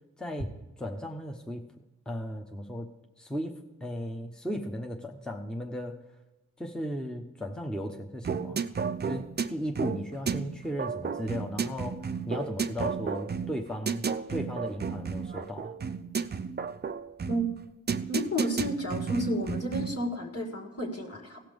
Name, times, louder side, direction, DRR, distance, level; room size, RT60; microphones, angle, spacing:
voice 1, 0.2-1.6 2.1-2.9 3.2-6.0 6.6-8.7 9.0-12.0 12.3-14.0 14.3-15.8, equal, 5° left, 2 dB, 1.0 m, -36 dB
sound 1, 8.2-20.1, right 6 dB, 35° right, 0.5 m, -33 dB
voice 2, 18.1-21.4, equal, 55° left, 1 dB, 2.3 m, -32 dB
16.5 x 5.9 x 5.2 m, 1.1 s
cardioid pair, 60°, 30 cm